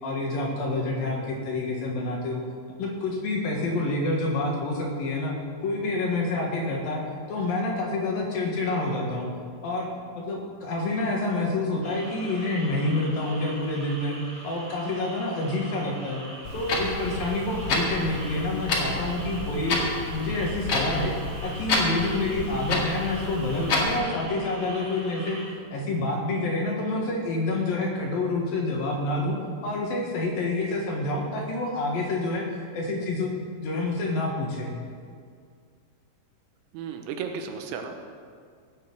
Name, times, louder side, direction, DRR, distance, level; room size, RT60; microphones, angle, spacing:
voice 1, 0.0-2.4 2.8-5.3 5.6-7.0 7.3-9.3 9.6-9.9 10.1-14.2 14.4-16.2 16.5-19.8 20.1-21.1 21.4-25.4 25.7-29.4 29.6-32.5 32.7-33.3 33.6-34.7, left 2 dB, 60° left, -1 dB, 2.9 m, -28 dB
sound 1, 11.8-25.5, right 1 dB, 35° right, 1.0 m, -43 dB
Clock, 16.4-24.0, left 2 dB, 45° left, 2.1 m, -29 dB
voice 2, 36.7-38.0, right 6 dB, 85° right, 5 dB, 3.5 m, -34 dB
17.5 x 7.7 x 7.6 m, 2.1 s
omnidirectional pair, 5.3 m